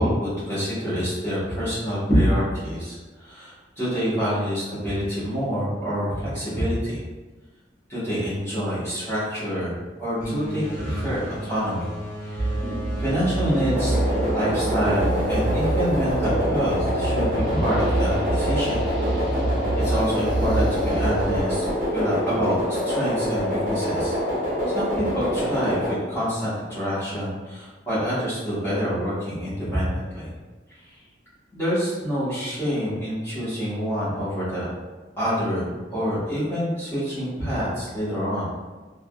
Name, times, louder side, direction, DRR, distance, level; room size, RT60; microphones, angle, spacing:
voice 1, 0.0-7.0 7.9-11.9 12.2-12.5 13.0-14.0 14.3-18.8 19.8-21.6 21.9-24.1 24.7-30.3 30.9-31.0 31.5-34.7 35.2-38.4, equal, 15° left, -11 dB, 1.2 m, -26 dB
sound 1, 10.2-16.2, right 2 dB, 40° left, 0.9 m, -35 dB
sound 2, 12.4-21.3, right 2 dB, 5° right, 0.9 m, -27 dB
sound 3, 13.7-25.9, equal, 40° right, 0.7 m, -25 dB
3.5 x 2.4 x 2.3 m, 1.2 s
head